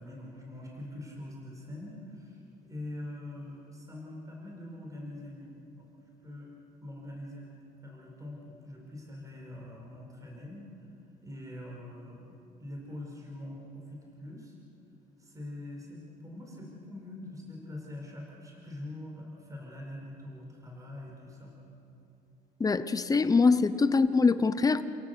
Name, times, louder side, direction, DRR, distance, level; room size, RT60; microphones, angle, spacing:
voice 1, 0.0-5.5 5.8-5.9 6.2-6.5 6.8-7.5 7.8-10.7 11.2-12.3 12.6-14.5 15.2-21.5, left 1 dB, 20° right, -2 dB, 4.9 m, -43 dB
voice 2, 22.6-24.8, left 4 dB, 20° left, 13 dB, 0.9 m, -23 dB
29.0 x 17.0 x 6.8 m, 2.9 s
cardioid pair, 110°, 17 cm